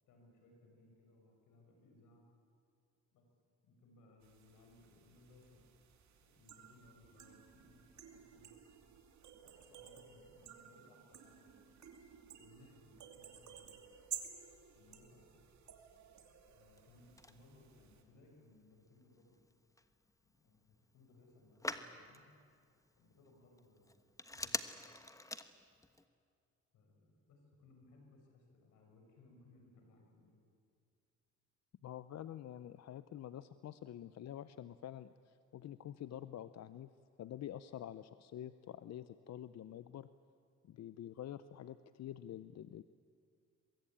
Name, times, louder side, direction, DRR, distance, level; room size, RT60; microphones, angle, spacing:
voice 1, 0.1-2.2 3.1-3.2 3.6-5.7 6.2-8.5 9.4-11.6 12.4-13.9 14.7-15.5 16.6-19.4 20.2-20.6 20.9-22.3 23.0-24.0 24.3-24.6 26.7-30.4, left 2 dB, 85° left, 2 dB, 6.2 m, -64 dB
sound 1, 4.2-18.0, right 9 dB, 65° right, 2.8 m, -54 dB
Telephone, 16.5-26.0, left 2 dB, 10° left, 1.3 m, -49 dB
voice 2, 31.8-36.9 37.2-40.1 40.6-42.8, left 11 dB, 60° left, 13 dB, 0.7 m, -47 dB
23.0 x 22.5 x 8.9 m, 2.3 s
cardioid pair, 90°, 30 cm